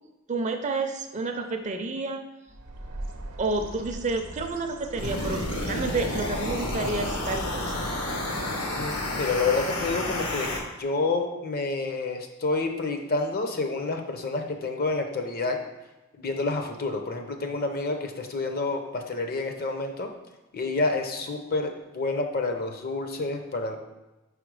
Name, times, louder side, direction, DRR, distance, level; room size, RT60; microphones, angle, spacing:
voice 1, 0.3-2.2 3.4-7.9, right 3 dB, 35° right, 6 dB, 0.4 m, -30 dB
Bird, 2.5-8.0, right 2 dB, 70° right, 0.7 m, -39 dB
sound 1, 5.0-10.6, left 1 dB, 75° left, 1.1 m, -30 dB
voice 2, 8.8-15.6 16.2-20.1 20.5-23.8, left 3 dB, 40° left, 5 dB, 0.6 m, -29 dB
4.9 x 4.2 x 4.7 m, 1.1 s
head